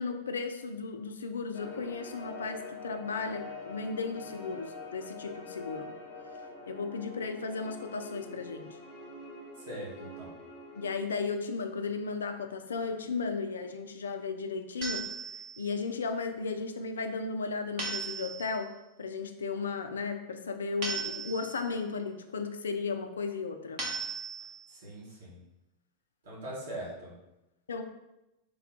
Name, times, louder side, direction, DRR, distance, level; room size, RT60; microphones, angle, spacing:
voice 1, 0.0-6.0 6.7-8.8 10.7-23.8 27.7-27.8, left 4 dB, 70° left, 7 dB, 0.3 m, -35 dB
sound 1, 1.5-10.9, left 3 dB, 50° left, 0.8 m, -45 dB
voice 2, 9.6-10.4 24.7-25.4 26.2-27.1, right 1 dB, 60° right, -5 dB, 1.3 m, -42 dB
sound 2, 14.8-15.7 17.8-18.6 20.8-21.7 23.8-24.7, right 4 dB, 45° right, 0.9 m, -37 dB
3.5 x 2.3 x 3.5 m, 0.96 s
figure-of-eight pair, 90°, 0 cm